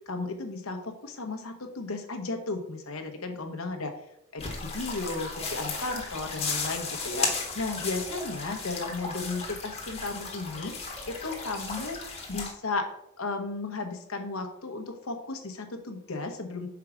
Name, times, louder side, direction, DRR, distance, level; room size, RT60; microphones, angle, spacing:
voice 1, 0.1-3.9 4.3-7.3 7.5-10.7 11.1-12.0 12.3-16.7, left 3 dB, 80° left, 5 dB, 1.0 m, -34 dB
sound 1, 4.4-12.5, left 4 dB, 25° left, 1.3 m, -35 dB
6.0 x 4.7 x 4.9 m, 0.79 s
head